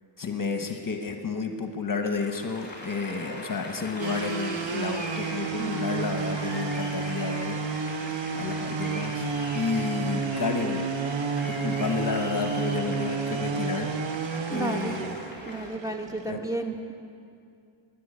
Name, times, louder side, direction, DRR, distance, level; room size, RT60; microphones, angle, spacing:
voice 1, 0.2-7.6 8.3-9.2 9.5-10.8 11.5-14.0 14.5-15.1 16.3-16.4, left 5 dB, 40° left, 5 dB, 1.2 m, -31 dB
Applause, 2.1-15.7, left 1 dB, 20° left, 3.7 m, -41 dB
sound 1, 4.0-16.3, right 5 dB, 60° right, 1.0 m, -31 dB
voice 2, 5.6-6.1 14.5-15.0 15.4-16.9, right 2 dB, 5° right, 3 dB, 1.5 m, -33 dB
12.5 x 11.0 x 8.7 m, 2.4 s
cardioid pair, 70°, 50 cm